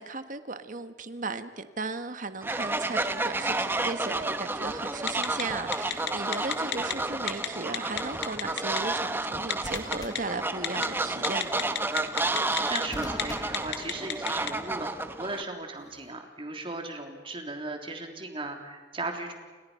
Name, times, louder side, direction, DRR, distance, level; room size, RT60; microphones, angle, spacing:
voice 1, 0.0-11.6, right 3 dB, 45° right, 1.4 m, -36 dB
Fowl, 2.4-15.4, right 2 dB, 10° right, 1.0 m, -31 dB
Telephone, 5.1-5.4 5.7-6.9 7.3-7.5 7.7-8.8 9.5-10.2 10.6-10.9 11.2-12.8 13.1-13.2 13.5-14.5, left 9 dB, 60° left, 2.4 m, -29 dB
sound 1, 5.8-6.1 9.6-11.1 12.9-14.6 15.8-16.1, left 1 dB, 20° left, 1.1 m, -44 dB
voice 2, 12.6-19.3, right 2 dB, 30° right, 3.4 m, -37 dB
30.0 x 28.5 x 5.7 m
head